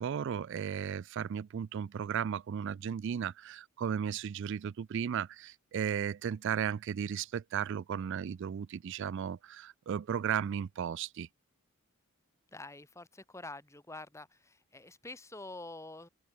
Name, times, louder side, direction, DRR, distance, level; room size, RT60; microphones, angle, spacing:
voice 1, 0.0-11.3, right 8 dB, 55° right, 0.3 m, -35 dB
voice 2, 12.5-16.1, left 2 dB, 15° left, 1.5 m, -47 dB
head